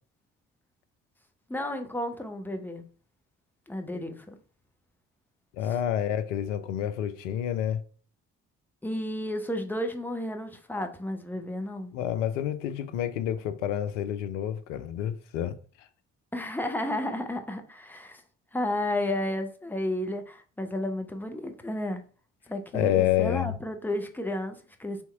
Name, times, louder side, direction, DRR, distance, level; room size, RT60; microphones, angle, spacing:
voice 1, 1.5-2.8 3.7-4.3 5.6-5.8 8.8-11.9 16.3-18.2 18.5-22.0 22.5-25.0, left 1 dB, 5° left, 0.8 m, -32 dB
voice 2, 5.6-7.8 11.9-15.5 22.7-23.6, left 11 dB, 80° left, 0.5 m, -28 dB
3.5 x 2.9 x 4.4 m
hypercardioid pair, 45°, 36 cm